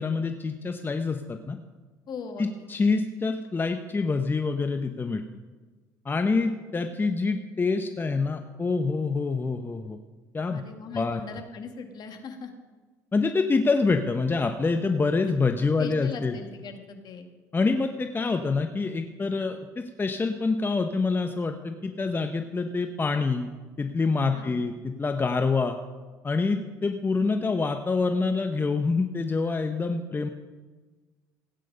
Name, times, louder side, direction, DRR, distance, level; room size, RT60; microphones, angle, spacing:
voice 1, 0.0-1.6 2.4-5.2 6.0-10.0 10.3-10.6 10.9-11.2 13.1-16.3 17.5-23.5 23.8-25.8 26.2-30.3, left 4 dB, 25° left, 6 dB, 1.0 m, -26 dB
voice 2, 2.1-2.5 10.5-12.5 15.8-17.3 24.3-24.6, left 5 dB, 55° left, 6 dB, 2.0 m, -39 dB
16.5 x 9.0 x 5.5 m, 1.3 s
hypercardioid pair, 65°, 9 cm